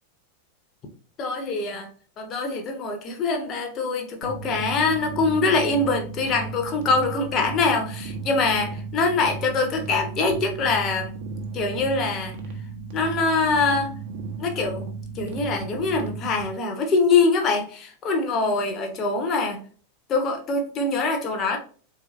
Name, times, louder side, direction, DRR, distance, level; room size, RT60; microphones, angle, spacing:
voice 1, 1.2-1.9 2.2-11.1 11.5-12.4 12.9-13.9 14.4-14.9 15.1-19.6 20.1-21.6, left 3 dB, 30° left, 0.8 m, -24 dB
sound 1, 4.2-16.4, right 4 dB, 55° right, 0.8 m, -35 dB
3.8 x 2.9 x 3.0 m
figure-of-eight pair, 90°, 0 cm